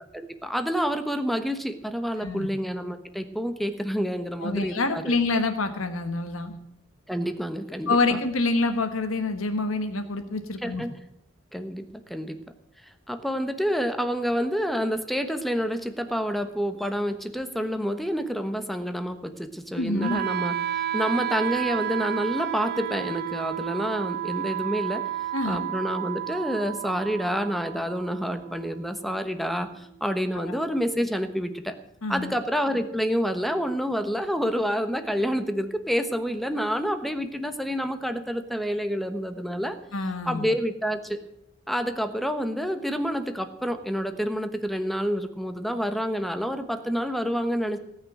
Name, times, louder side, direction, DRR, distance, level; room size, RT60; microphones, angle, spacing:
voice 1, 0.1-5.2 7.1-8.2 10.6-10.9 11.5-12.4 13.1-25.0 25.4-31.8 32.1-39.8 40.3-41.2 41.7-47.8, equal, ahead, 8 dB, 1.1 m, -28 dB
voice 2, 4.4-6.5 7.9-10.8 19.7-20.2 25.3-25.7 30.3-30.6 32.0-32.3 39.9-40.5, left 3 dB, 90° left, 7 dB, 1.4 m, -27 dB
Wind instrument woodwind instrument, 20.0-30.0, right 12 dB, 50° right, 0.9 m, -32 dB
17.5 x 6.4 x 9.3 m, 0.77 s
head